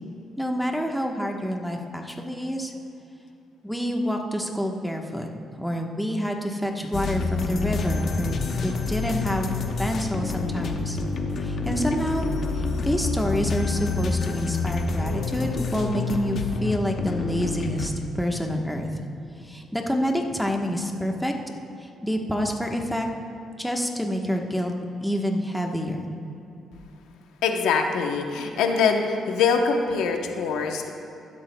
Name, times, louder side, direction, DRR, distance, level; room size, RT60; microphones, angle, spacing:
voice 1, 0.4-2.7 3.6-5.3 5.6-9.5 9.8-11.0 11.4-18.9 19.4-21.3 21.8-23.1 23.6-24.7 25.0-26.0, equal, ahead, 1 dB, 1.1 m, -27 dB
sound 1, 6.9-17.9, left 4 dB, 55° left, 1.0 m, -28 dB
voice 2, 27.4-30.9, left 5 dB, 90° left, 4 dB, 0.9 m, -23 dB
15.5 x 12.0 x 2.2 m, 2.9 s
cardioid pair, 90°, 0 cm